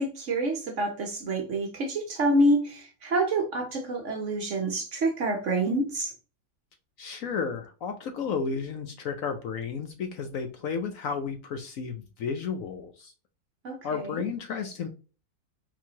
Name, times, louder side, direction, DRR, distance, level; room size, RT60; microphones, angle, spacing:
voice 1, 0.0-6.1 13.6-13.8, right 1 dB, 50° right, 1.1 m, -27 dB
voice 2, 7.0-13.1 13.8-14.9, left 5 dB, 65° left, 0.9 m, -32 dB
4.6 x 3.9 x 2.9 m
omnidirectional pair, 1.8 m